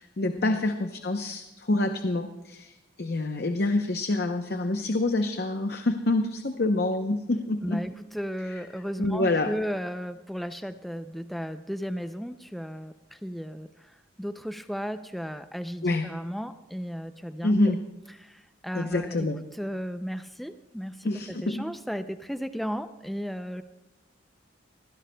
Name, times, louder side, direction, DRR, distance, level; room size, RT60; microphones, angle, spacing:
voice 1, 0.0-7.9 9.0-9.5 15.8-16.0 17.4-17.8 18.7-19.4 21.0-21.6, left 2 dB, 55° left, 6 dB, 0.7 m, -27 dB
voice 2, 7.6-17.6 18.1-23.6, equal, ahead, 9 dB, 0.4 m, -35 dB
24.5 x 16.5 x 2.2 m, 1.0 s
head